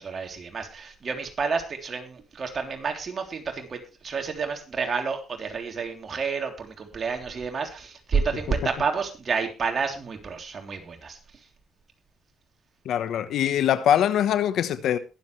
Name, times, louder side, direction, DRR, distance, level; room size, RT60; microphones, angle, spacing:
voice 1, 0.0-11.2, right 5 dB, 45° right, 3.3 m, -30 dB
voice 2, 12.8-15.0, left 10 dB, 75° left, 1.1 m, -23 dB
21.5 x 7.7 x 3.2 m
cardioid pair, 90°, 0 cm